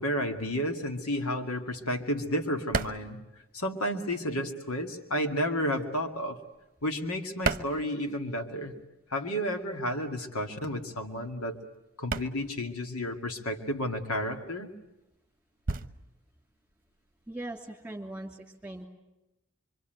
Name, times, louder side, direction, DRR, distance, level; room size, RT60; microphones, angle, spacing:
voice 1, 0.0-3.2 3.5-6.4 6.8-8.7 9.1-11.6 12.0-14.7, equal, 85° left, 5 dB, 2.3 m, -31 dB
sound 1, 0.9-4.3 4.5-8.7 8.9-17.7, right 3 dB, 40° right, 0.9 m, -37 dB
voice 2, 17.3-18.9, right 1 dB, 5° right, 3 dB, 3.0 m, -40 dB
25.5 x 25.5 x 9.2 m, 0.93 s
head